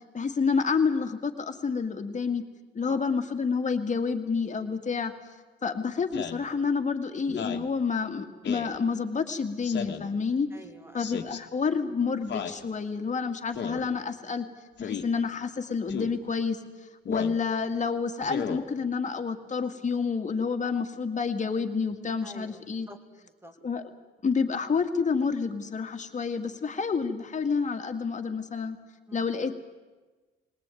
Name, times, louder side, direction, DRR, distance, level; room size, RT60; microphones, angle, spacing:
voice 1, 0.1-2.4 2.7-5.1 5.6-10.5 10.9-14.5 14.8-16.6 17.1-22.9 23.6-23.8 24.2-28.8 29.1-29.5, left 5 dB, 40° left, 6 dB, 2.1 m, -29 dB
voice 2, 2.8-3.1 10.5-11.1 22.2-23.5 29.1-29.3, equal, 10° right, 6 dB, 2.6 m, -48 dB
Speech synthesizer, 6.1-6.4 7.3-7.7 8.4-8.7 9.6-10.1 11.0-11.4 12.3-12.6 13.5-13.9 14.8-15.1 15.9-16.2 17.1-17.4 18.2-18.6, left 7 dB, 60° left, 1.7 m, -34 dB
20.5 x 19.0 x 9.2 m, 1.3 s
cardioid pair, 90°, 20 cm